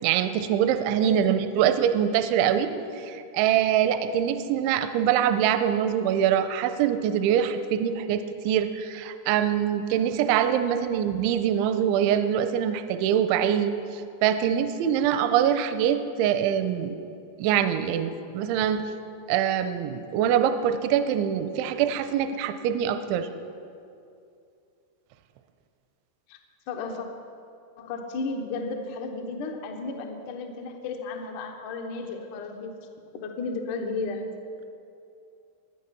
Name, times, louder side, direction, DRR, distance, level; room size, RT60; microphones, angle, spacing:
voice 1, 0.0-2.7 3.0-16.9 17.4-18.8 19.3-23.3, right 9 dB, 85° right, 9 dB, 2.8 m, -24 dB
voice 2, 1.0-1.7 26.3-26.4 26.7-27.1 27.8-32.8 33.2-34.3, left 3 dB, 85° left, 3 dB, 1.7 m, -33 dB
22.5 x 9.1 x 5.9 m, 2.6 s
omnidirectional pair, 5.7 m